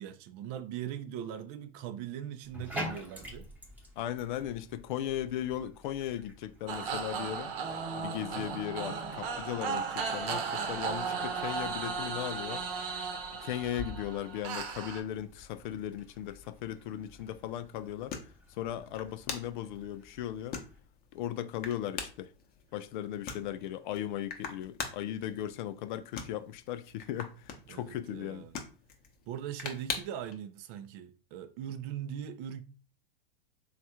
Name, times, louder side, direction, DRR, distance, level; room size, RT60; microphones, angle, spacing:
voice 1, 0.0-3.5 27.7-28.6 29.3-32.6, right 10 dB, 40° right, 0.4 m, -40 dB
Bathtub (filling or washing), 2.4-20.8, equal, 5° right, 0.9 m, -49 dB
voice 2, 4.0-7.5 7.9-12.6 13.4-18.2 18.5-20.6 21.1-22.3 22.7-28.5, left 11 dB, 50° left, 0.4 m, -37 dB
sound 1, 6.7-15.0, right 5 dB, 60° right, 0.9 m, -35 dB
sound 2, 13.6-30.3, left 5 dB, 30° left, 0.8 m, -45 dB
3.2 x 2.4 x 4.2 m
hypercardioid pair, 105°, 31 cm